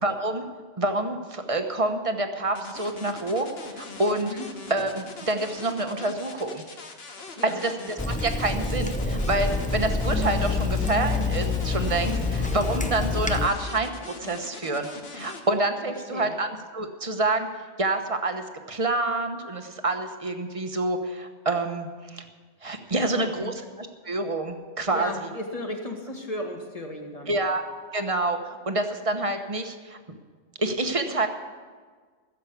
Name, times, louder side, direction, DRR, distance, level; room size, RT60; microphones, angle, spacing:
voice 1, 0.0-0.5 0.8-4.3 4.7-6.6 7.4-13.9 14.2-16.5 16.7-17.5 17.8-22.2 22.6-25.1 27.3-27.6 27.9-30.2 30.6-31.3, right 2 dB, 30° right, 6 dB, 1.1 m, -27 dB
sound 1, 2.5-15.4, left 3 dB, 60° left, 1.5 m, -42 dB
Water tap faucet / Sink (filling or washing), 8.0-13.5, left 3 dB, 10° left, 0.4 m, -27 dB
voice 2, 15.8-16.4 22.9-23.5 24.9-27.3, left 1 dB, 30° left, 2 dB, 1.8 m, -35 dB
16.0 x 7.5 x 8.3 m, 1.5 s
omnidirectional pair, 1.2 m